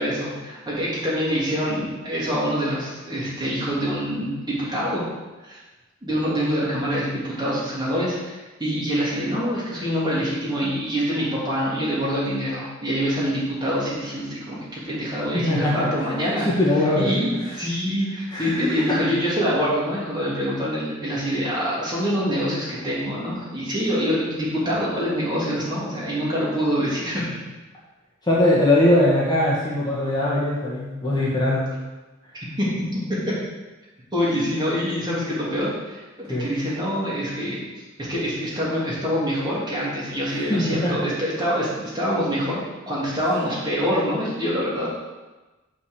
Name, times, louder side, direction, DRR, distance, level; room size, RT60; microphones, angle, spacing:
voice 1, 0.0-5.0 5.4-5.6 6.0-16.5 17.0-27.4 32.6-33.2 34.1-37.6 38.0-42.6 42.9-44.9, equal, 20° right, -7 dB, 3.1 m, -25 dB
voice 2, 15.3-15.9 16.5-17.4 18.3-18.7 28.2-31.7 36.3-36.4 40.5-41.0, left 1 dB, 20° left, -6 dB, 2.0 m, -21 dB
6.8 x 6.5 x 7.1 m, 1.2 s
head